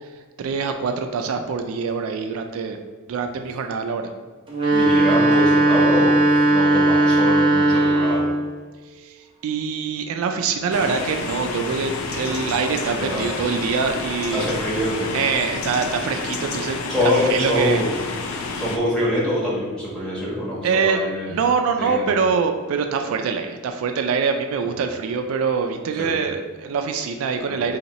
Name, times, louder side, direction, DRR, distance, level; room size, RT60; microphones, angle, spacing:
voice 1, 0.4-2.8 3.1-4.1 9.0-9.1 9.4-14.5 15.1-17.8 20.6-21.0 21.3-27.8, right 5 dB, 75° right, 5 dB, 0.3 m, -24 dB
sound 1, 4.5-8.5, right 2 dB, 25° right, 0.6 m, -17 dB
voice 2, 4.7-6.2 6.5-8.3 12.2-12.4 13.0-13.3 14.3-15.1 16.9-17.9 18.5-21.3 21.8-22.0 26.0-26.1 27.5-27.6, left 1 dB, 5° left, -8 dB, 1.2 m, -24 dB
sound 2, 10.7-18.8, left 4 dB, 75° left, 0.4 m, -30 dB
3.5 x 2.9 x 4.0 m, 1.4 s
head